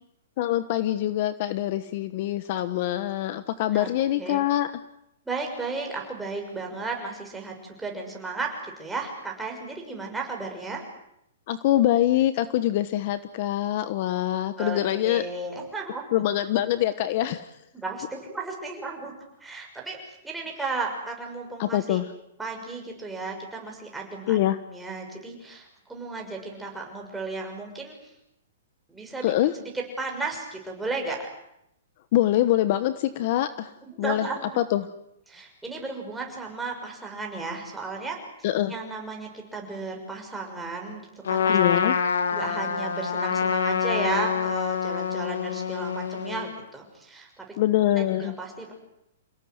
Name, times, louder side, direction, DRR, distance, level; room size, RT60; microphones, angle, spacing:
voice 1, 0.4-4.7 11.5-15.2 16.1-17.5 21.6-22.1 24.3-24.6 29.2-29.5 32.1-33.7 34.0-34.2 34.6-34.9 38.4-38.7 41.5-42.0 47.6-48.3, left 13 dB, 45° left, 13 dB, 1.2 m, -24 dB
voice 2, 3.7-4.4 5.2-10.8 14.6-16.1 17.7-19.1 19.4-22.0 22.4-28.1 28.9-31.3 33.8-34.6 35.3-41.8 42.3-47.6 47.9-48.7, right 3 dB, 5° right, 0 dB, 6.2 m, -34 dB
Trumpet, 41.3-46.5, left 6 dB, 80° left, 2.7 m, -26 dB
28.5 x 18.0 x 9.6 m, 0.81 s
hypercardioid pair, 160°, 0 cm